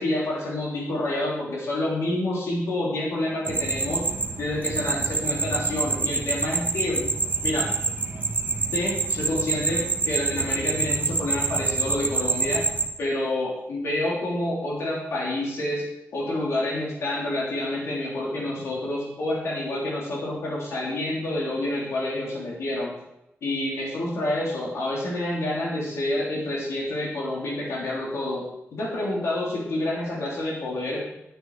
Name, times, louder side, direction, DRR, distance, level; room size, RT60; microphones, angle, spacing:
voice 1, 0.0-4.0 4.4-7.0 7.4-7.7 8.7-12.6 13.0-15.8 16.1-22.9 23.4-28.4 28.7-31.0, left 1 dB, 90° left, -4 dB, 3.5 m, -28 dB
sound 1, 3.5-12.9, right 3 dB, 40° right, 1.4 m, -26 dB
11.5 x 9.2 x 4.9 m, 0.86 s
wide cardioid pair, 140°, 5 cm